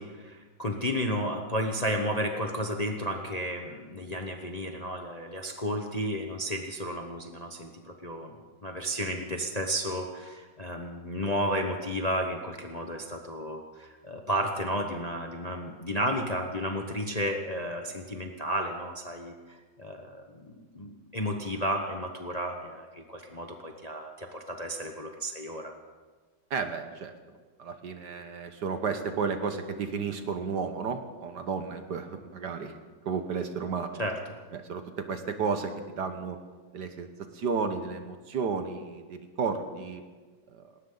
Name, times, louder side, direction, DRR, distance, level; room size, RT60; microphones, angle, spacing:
voice 1, 0.0-8.4 8.6-25.7 34.0-34.2, equal, 25° left, 3 dB, 0.9 m, -32 dB
voice 2, 26.5-27.1 27.6-32.8 33.0-34.0 34.5-36.4 36.7-40.0 40.5-40.6, right 5 dB, 60° right, 7 dB, 1.6 m, -32 dB
19.5 x 18.5 x 4.0 m, 1.4 s
omnidirectional pair, 2.2 m